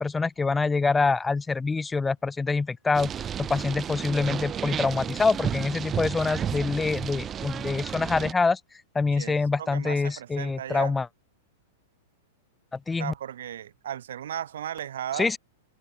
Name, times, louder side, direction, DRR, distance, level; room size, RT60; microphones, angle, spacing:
voice 1, 0.0-8.6 8.9-11.1 12.7-13.1 15.2-15.4, left 4 dB, 10° left, 0.4 m, -25 dB
sound 1, 2.9-8.3, right 9 dB, 25° right, 2.4 m, -32 dB
voice 2, 9.1-11.0 13.0-15.4, right 10 dB, 65° right, 1.7 m, -36 dB
figure-of-eight pair, 100°, 0 cm